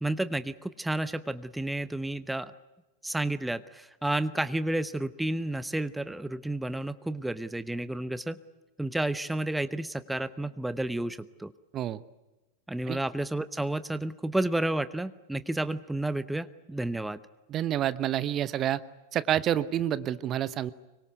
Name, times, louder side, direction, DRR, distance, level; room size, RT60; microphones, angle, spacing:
voice 1, 0.0-2.5 3.0-8.4 8.8-11.5 12.7-17.2, right 1 dB, 5° right, 14 dB, 0.9 m, -31 dB
voice 2, 17.5-18.8 19.1-20.7, right 11 dB, 30° right, 18 dB, 0.9 m, -28 dB
25.5 x 24.0 x 8.2 m, 1.1 s
figure-of-eight pair, 90°, 0 cm